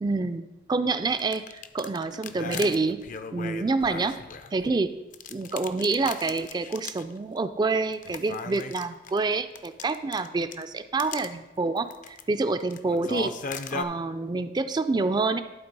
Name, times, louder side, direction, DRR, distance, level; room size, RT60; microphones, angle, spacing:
voice 1, 0.0-3.0 3.3-4.2 4.5-5.0 5.3-13.3 13.7-15.4, right 3 dB, 25° right, 11 dB, 0.3 m, -27 dB
sound 1, 1.1-4.7 5.1-7.1 7.4-7.5 7.9-10.6 11.0-11.3 11.8-12.2 12.6-13.8, left 5 dB, 45° left, 0.4 m, -37 dB
11.5 x 3.9 x 5.3 m, 1.0 s
head